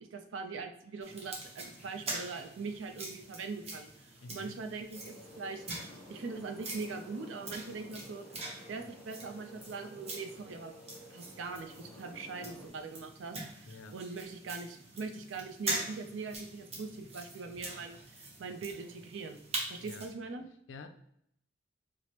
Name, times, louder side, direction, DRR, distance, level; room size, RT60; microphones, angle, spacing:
voice 1, 0.0-5.7 6.1-8.3 8.7-10.7 11.1-19.4 19.7-20.4, right 4 dB, 80° right, 6 dB, 0.4 m, -42 dB
sound 1, 1.0-20.1, right 2 dB, 35° right, 0.8 m, -44 dB
voice 2, 4.2-4.6 13.7-14.0 19.8-20.1 20.7-20.9, left 3 dB, 80° left, 7 dB, 0.4 m, -48 dB
sound 2, 4.9-12.7, left 1 dB, 5° left, 0.6 m, -53 dB
4.6 x 2.0 x 2.8 m, 0.71 s
head